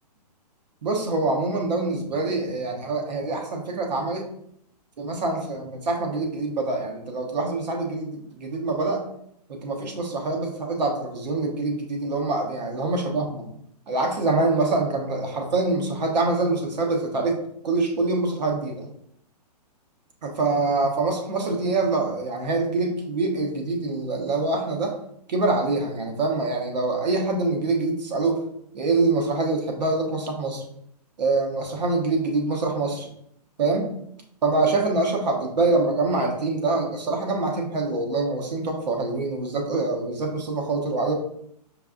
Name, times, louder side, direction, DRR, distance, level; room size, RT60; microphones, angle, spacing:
voice 1, 0.8-4.3 5.0-9.0 9.5-13.5 13.9-17.4 17.6-18.9 20.2-24.9 25.3-28.4 28.7-30.6 31.2-33.1 33.6-33.9 34.4-41.1, right 3 dB, 80° right, 2 dB, 1.0 m, -25 dB
5.3 x 2.4 x 2.5 m, 0.72 s
hypercardioid pair, 155°, 21 cm